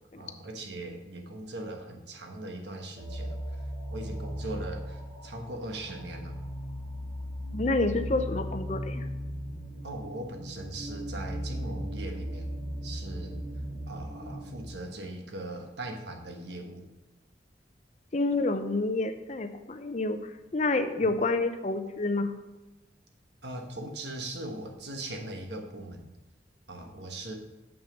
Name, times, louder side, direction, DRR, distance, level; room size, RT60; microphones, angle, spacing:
voice 1, 0.2-3.4 3.9-6.4 9.8-12.5 12.8-13.4 13.9-16.9 21.0-21.1 23.4-26.1 26.7-27.4, right 1 dB, 65° right, 3 dB, 1.2 m, -40 dB
sound 1, 3.0-14.7, equal, 40° right, 2.1 m, -37 dB
voice 2, 7.5-9.0 18.1-20.2 20.5-22.3, left 2 dB, 40° left, 8 dB, 0.6 m, -28 dB
7.3 x 6.1 x 5.2 m, 1.0 s
head